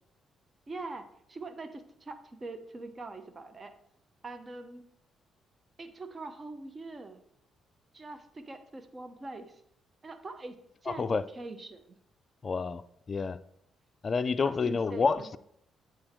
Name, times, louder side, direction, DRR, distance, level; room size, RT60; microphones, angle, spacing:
voice 1, 0.7-3.7 4.2-4.8 5.8-7.2 7.9-9.6 10.0-10.6 10.8-11.8 14.4-15.3, right 2 dB, 35° right, 1.1 m, -43 dB
voice 2, 12.4-12.8 13.1-13.4 14.0-15.4, left 4 dB, 45° left, 0.4 m, -28 dB
8.7 x 4.5 x 4.5 m
hypercardioid pair, 45°, 0 cm